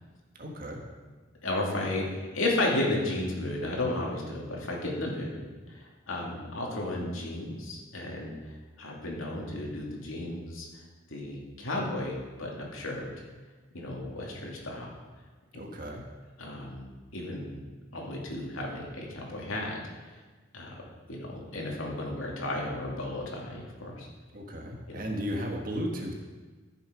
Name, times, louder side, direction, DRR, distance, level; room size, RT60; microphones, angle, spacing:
voice 1, 0.4-0.8 15.5-16.0 24.3-26.2, equal, 45° right, 1 dB, 1.7 m, -35 dB
voice 2, 1.4-13.1 13.7-14.9 16.4-17.6 17.9-19.8 20.0-20.2 20.5-20.8 21.1-24.1 24.9-25.0, left 1 dB, 85° left, -2 dB, 2.6 m, -34 dB
13.5 x 7.1 x 5.2 m, 1.3 s
head